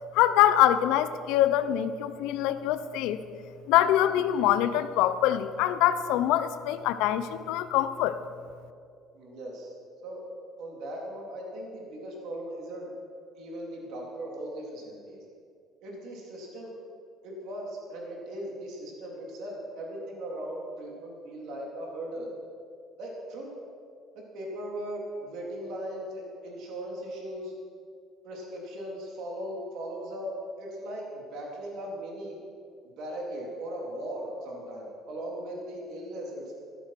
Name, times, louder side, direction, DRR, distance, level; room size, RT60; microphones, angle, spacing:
voice 1, 0.1-3.2 3.7-8.2, left 12 dB, 85° left, 12 dB, 0.8 m, -24 dB
voice 2, 9.1-9.7 10.0-10.2 10.6-12.9 13.3-15.2 15.8-16.7 17.2-22.3 23.0-23.5 24.1-27.5 28.2-32.4 33.0-36.5, right 1 dB, 70° right, -1 dB, 3.6 m, -38 dB
14.0 x 13.0 x 6.1 m, 2.3 s
cardioid pair, 130°, 0 cm